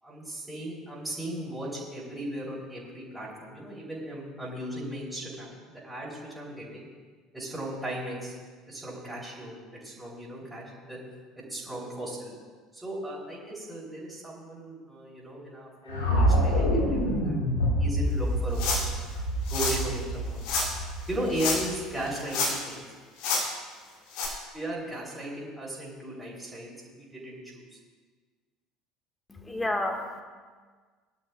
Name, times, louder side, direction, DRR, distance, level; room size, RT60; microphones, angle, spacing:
voice 1, 0.0-6.9 7.3-8.3 8.7-9.6 9.8-11.0 11.4-12.3 12.7-17.3 17.8-18.8 19.5-20.4 21.1-22.8 24.5-27.6, right 1 dB, 5° right, -8 dB, 4.3 m, -36 dB
sound 1, 15.9-22.0, equal, 75° left, 2.3 m, -27 dB
sound 2, 18.5-19.0 19.5-19.8 20.4-20.7 21.3-21.8 22.1-22.7 23.2-23.4 24.1-24.3, left 4 dB, 60° left, 2.8 m, -28 dB
voice 2, 29.3-30.2, left 1 dB, 15° left, 3 dB, 1.7 m, -30 dB
21.0 x 11.5 x 2.4 m, 1.5 s
figure-of-eight pair, 60°, 0 cm